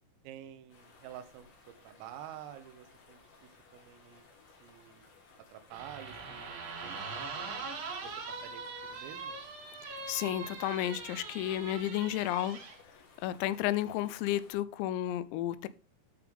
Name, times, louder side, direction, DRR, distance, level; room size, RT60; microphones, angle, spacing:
voice 1, 0.2-4.2 4.6-5.1 5.4-9.4, right 10 dB, 80° right, 3.5 m, -50 dB
sound 1, 0.7-14.5, left 4 dB, 70° left, 5.8 m, -60 dB
sound 2, 5.7-12.8, right 4 dB, 60° right, 4.4 m, -42 dB
voice 2, 10.1-12.6 13.2-15.7, left 13 dB, 90° left, 3.3 m, -32 dB
11.5 x 6.0 x 3.5 m
omnidirectional pair, 6.0 m